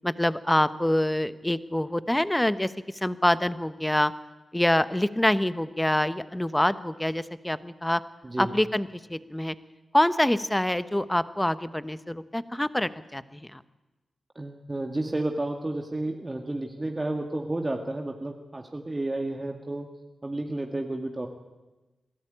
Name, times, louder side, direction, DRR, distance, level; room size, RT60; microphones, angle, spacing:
voice 1, 0.0-2.7 3.0-4.1 4.5-8.0 8.4-9.5 9.9-13.6, left 1 dB, 15° left, 14 dB, 1.1 m, -25 dB
voice 2, 14.4-19.9 20.2-21.3, right 2 dB, 30° right, 3 dB, 1.9 m, -31 dB
21.5 x 13.5 x 9.0 m, 1.1 s
supercardioid pair, 40°, 0 cm